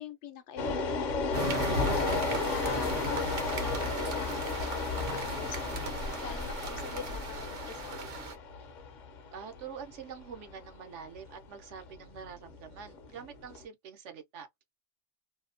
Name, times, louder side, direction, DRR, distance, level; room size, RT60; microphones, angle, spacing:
voice 1, 0.0-1.8 2.5-5.6 6.2-8.2, left 8 dB, 90° left, 0.9 m, -44 dB
sound 1, 0.6-13.6, left 4 dB, 60° left, 0.5 m, -34 dB
sound 2, 1.3-8.3, right 2 dB, 60° right, 0.9 m, -36 dB
voice 2, 9.3-14.5, right 7 dB, 85° right, 1.0 m, -45 dB
2.7 x 2.1 x 2.5 m
omnidirectional pair, 1.2 m